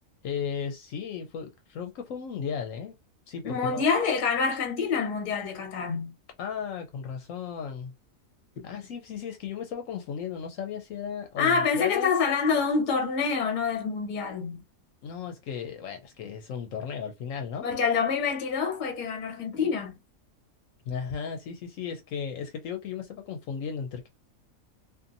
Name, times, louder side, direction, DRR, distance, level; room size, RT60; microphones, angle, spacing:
voice 1, 0.2-2.9 3.3-3.8 6.4-7.9 8.6-12.1 15.0-17.7 20.9-24.1, left 7 dB, 70° left, 0.9 m, -35 dB
voice 2, 3.4-6.1 11.4-14.6 17.6-19.9, left 5 dB, 40° left, 0.8 m, -26 dB
2.6 x 2.5 x 2.5 m
omnidirectional pair, 1.5 m